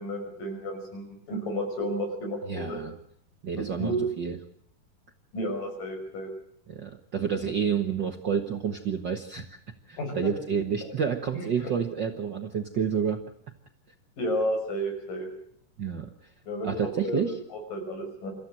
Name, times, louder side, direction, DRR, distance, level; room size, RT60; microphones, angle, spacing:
voice 1, 0.0-2.8 3.6-4.1 5.3-6.3 10.0-10.3 11.3-11.5 14.2-15.3 16.5-16.7 17.0-17.2 17.5-18.3, equal, 90° left, 4 dB, 7.6 m, -31 dB
voice 2, 2.5-2.9 3.4-4.4 6.7-9.6 9.9-13.2 15.8-16.1 16.6-17.4, right 7 dB, 55° right, 5 dB, 1.3 m, -29 dB
26.5 x 14.5 x 7.6 m, 0.67 s
omnidirectional pair, 3.7 m